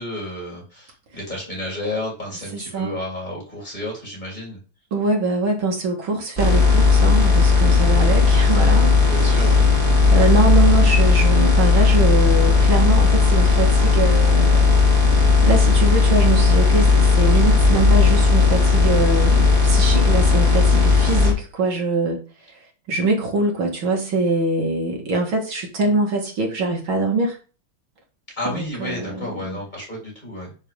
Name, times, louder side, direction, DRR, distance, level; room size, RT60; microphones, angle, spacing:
voice 1, 0.0-4.6 9.1-9.6 28.4-30.5, left 1 dB, 20° left, 3.8 m, -31 dB
voice 2, 2.5-3.0 4.9-8.9 9.4-9.5 10.1-14.8 15.4-22.2 22.9-27.4 28.5-29.6, right 3 dB, 65° right, 2.4 m, -23 dB
sound 1, 6.4-21.3, left 4 dB, 25° right, 2.4 m, -15 dB
9.5 x 5.0 x 3.6 m
omnidirectional pair, 2.4 m